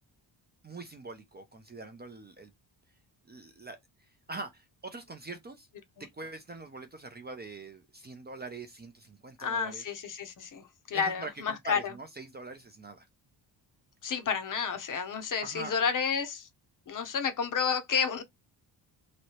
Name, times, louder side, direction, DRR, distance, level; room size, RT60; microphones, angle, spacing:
voice 1, 0.6-2.5 3.3-3.8 4.3-5.7 6.1-9.8 10.9-13.1 15.4-15.7, right 3 dB, 25° right, 0.4 m, -43 dB
voice 2, 9.4-11.9 14.0-16.5 16.9-18.2, left 6 dB, 45° left, 0.7 m, -31 dB
3.1 x 2.7 x 2.8 m
cardioid pair, 140°, 44 cm